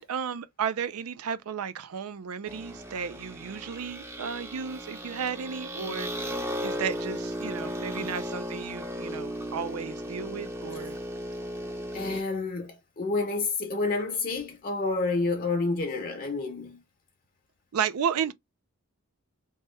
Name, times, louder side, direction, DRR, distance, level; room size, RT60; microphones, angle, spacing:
voice 1, 0.0-11.0 17.7-18.3, right 7 dB, 85° right, 0.4 m, -33 dB
sound 1, 2.4-12.2, equal, 10° right, 0.5 m, -36 dB
voice 2, 11.9-16.8, left 3 dB, 40° left, 0.6 m, -29 dB
3.0 x 2.2 x 3.1 m
head